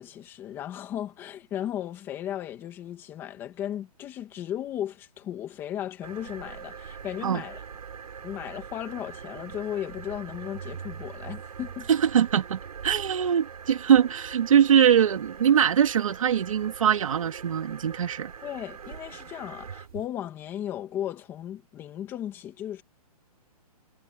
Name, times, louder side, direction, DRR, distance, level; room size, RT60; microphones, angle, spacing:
voice 1, 0.0-7.6 8.2-11.9 18.4-22.8, left 11 dB, 10° left, 2.2 m, -35 dB
sound 1, 6.0-20.1, right 7 dB, 75° right, 5.9 m, -42 dB
voice 2, 11.9-18.3, right 9 dB, 55° right, 2.5 m, -22 dB
hypercardioid pair, 180°, 20 cm